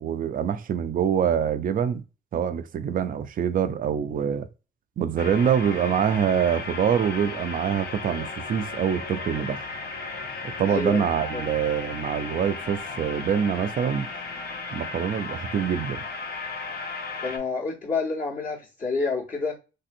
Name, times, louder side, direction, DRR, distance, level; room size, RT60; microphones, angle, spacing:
voice 1, 0.0-2.0 2.3-4.5 5.0-9.7 10.6-14.1 14.7-16.0, right 8 dB, 45° right, 0.4 m, -25 dB
sound 1, 5.2-17.4, left 3 dB, 55° left, 0.6 m, -35 dB
voice 2, 10.7-11.0 11.3-11.4 17.2-19.6, left 4 dB, 35° left, 1.1 m, -28 dB
3.3 x 2.6 x 2.5 m
cardioid pair, 90°, 20 cm